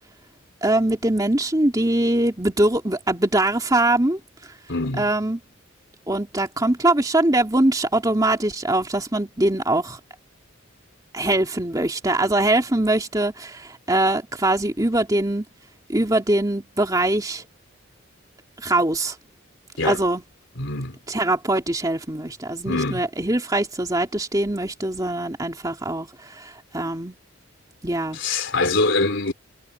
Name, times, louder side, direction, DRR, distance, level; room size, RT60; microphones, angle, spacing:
voice 1, 0.6-4.2 5.0-5.4 6.1-10.0 11.1-15.4 15.9-17.4 18.6-19.2 19.8-20.2 21.1-27.2 27.8-28.2, right 1 dB, 20° right, 2.4 m, -22 dB
voice 2, 4.7-5.1 19.8-20.0 20.6-21.0 22.6-23.0 28.1-29.3, left 3 dB, 60° left, 4.1 m, -23 dB
head